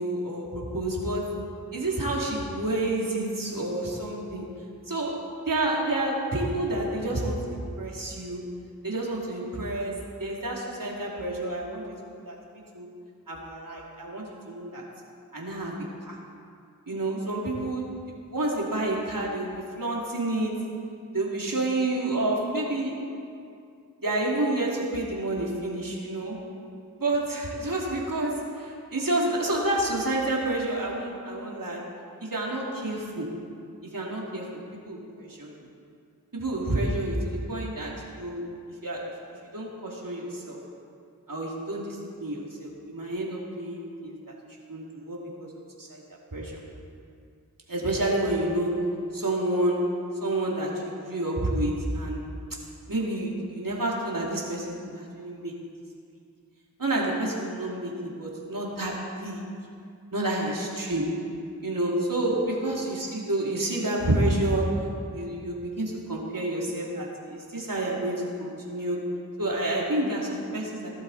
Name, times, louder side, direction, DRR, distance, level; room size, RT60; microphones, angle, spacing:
voice 1, 0.0-1.3 1.7-4.5 4.9-8.4 8.8-12.4 12.7-12.9 13.3-14.8 15.3-16.2 16.9-17.9 18.3-20.6 21.1-23.0 24.0-26.4 27.0-31.8 32.2-33.3 33.9-34.5 34.8-35.5 36.3-38.5 38.8-39.1 39.5-40.6 41.3-44.2 44.7-45.5 45.8-46.0 46.3-46.6 47.7-48.8 49.1-49.9 50.2-52.3 52.9-55.5 56.8-59.4 60.1-61.2 61.6-69.1 69.4-70.9, right 1 dB, 65° right, -3 dB, 3.2 m, -29 dB
20.0 x 12.5 x 4.3 m, 2.4 s
wide cardioid pair, 40°, 35 cm